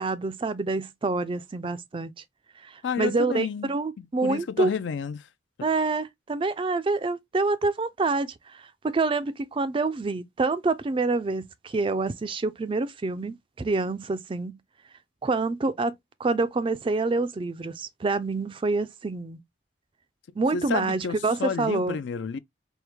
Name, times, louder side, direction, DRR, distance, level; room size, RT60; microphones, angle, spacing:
voice 1, 0.0-2.1 2.6-4.7 5.6-14.6 15.2-15.9 16.2-19.4 20.4-22.0, right 3 dB, 25° right, 0.3 m, -27 dB
voice 2, 2.8-3.7 4.0-5.3 5.6-5.7 20.5-22.4, left 6 dB, 65° left, 0.4 m, -31 dB
4.5 x 2.1 x 3.3 m
head